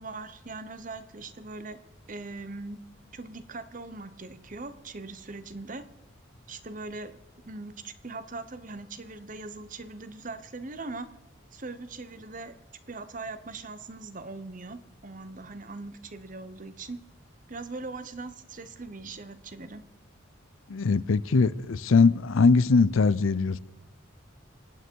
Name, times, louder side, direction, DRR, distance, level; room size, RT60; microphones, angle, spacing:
voice 1, 0.0-1.8 2.1-2.8 3.1-5.8 6.5-7.2 7.4-11.1 11.5-12.6 12.9-17.0 17.5-19.8, right 3 dB, 40° right, 0.9 m, -40 dB
voice 2, 20.7-23.6, left 4 dB, 85° left, 0.5 m, -21 dB
25.5 x 9.3 x 4.6 m
head